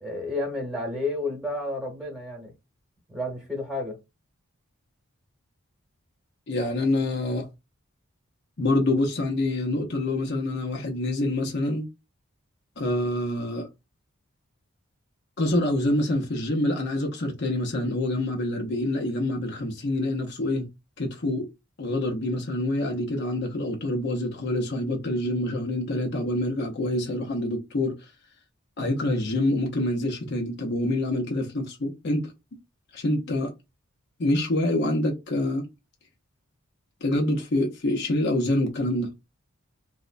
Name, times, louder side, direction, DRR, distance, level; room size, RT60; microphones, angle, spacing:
voice 1, 0.0-2.5 3.1-4.0, left 2 dB, 5° right, 1.1 m, -31 dB
voice 2, 6.5-7.5 8.6-11.9 12.8-13.7 15.4-20.7 21.0-21.5 21.8-28.0 28.8-32.3 32.9-33.5 34.2-35.7 37.0-39.1, left 1 dB, 50° left, 0.6 m, -26 dB
4.1 x 2.1 x 2.5 m
head